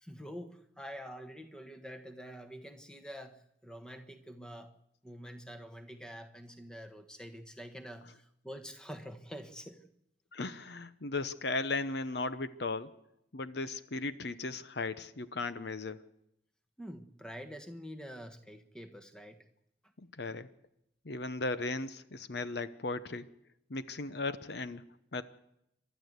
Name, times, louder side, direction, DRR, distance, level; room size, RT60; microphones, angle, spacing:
voice 1, 0.0-4.7 5.0-9.9 16.8-19.4, equal, 5° left, 7 dB, 1.3 m, -46 dB
voice 2, 10.3-12.9 13.3-16.0 20.0-20.5 21.0-23.3 23.7-24.8 25.1-25.2, left 3 dB, 60° left, 13 dB, 0.8 m, -36 dB
28.5 x 12.5 x 8.1 m, 0.81 s
head